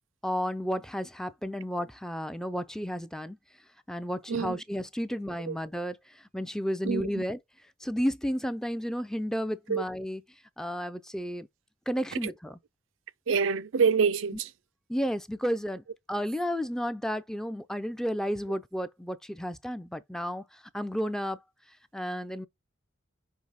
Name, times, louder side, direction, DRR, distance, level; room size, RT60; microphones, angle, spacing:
voice 1, 0.2-3.4 3.9-7.4 7.8-10.2 10.6-11.5 11.9-12.6 14.9-21.4 21.7-22.5, equal, 5° left, 0.4 m, -32 dB
voice 2, 4.3-4.6 5.5-5.6 6.8-7.2 9.7-9.8 12.2-12.3 13.3-14.5, right 6 dB, 75° right, 0.4 m, -26 dB
5.4 x 4.6 x 3.9 m
head